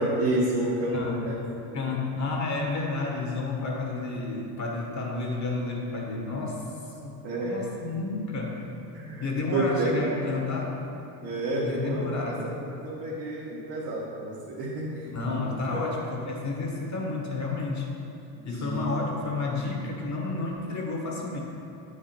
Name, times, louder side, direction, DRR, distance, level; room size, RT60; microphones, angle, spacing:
voice 1, 0.0-1.3 1.6-1.8 7.2-7.5 8.9-10.1 11.2-12.0 12.8-15.0 18.6-18.8, right 1 dB, 55° right, -7 dB, 1.6 m, -29 dB
voice 2, 1.7-6.6 7.0-8.7 9.2-10.8 11.6-12.5 15.0-18.0 18.4-21.4, left 3 dB, 35° left, -1 dB, 1.6 m, -31 dB
9.2 x 5.0 x 4.5 m, 2.9 s
supercardioid pair, 100°, 47 cm